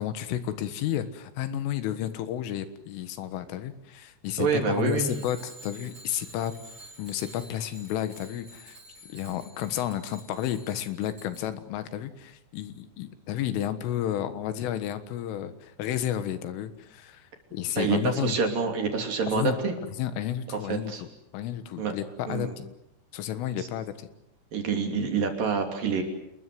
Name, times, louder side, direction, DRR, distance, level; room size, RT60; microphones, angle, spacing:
voice 1, 0.0-6.5 7.0-8.8 9.1-17.2 17.5-18.4 19.3-19.6 20.0-21.1 21.3-22.7 23.1-24.1, left 11 dB, 85° left, 11 dB, 4.1 m, -31 dB
voice 2, 4.4-5.2 17.8-19.7 20.7-21.0 21.8-21.9 22.3-22.6 23.6-23.7 24.5-26.0, right 5 dB, 50° right, 3 dB, 4.2 m, -27 dB
Bicycle bell, 5.0-11.4, right 1 dB, 25° right, 7.4 m, -49 dB
28.5 x 21.5 x 7.8 m, 0.81 s
omnidirectional pair, 5.6 m